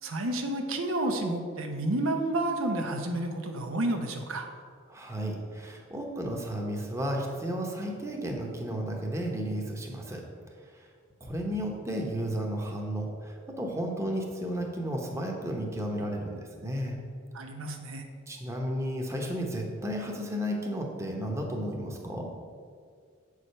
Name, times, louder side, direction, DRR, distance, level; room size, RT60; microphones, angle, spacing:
voice 1, 0.0-4.5 17.3-18.0, right 1 dB, 85° right, 4 dB, 0.9 m, -30 dB
voice 2, 4.9-10.2 10.6-10.9 11.2-17.0 18.3-22.3, equal, 15° right, 0 dB, 1.0 m, -33 dB
7.4 x 4.9 x 5.6 m, 2.1 s
head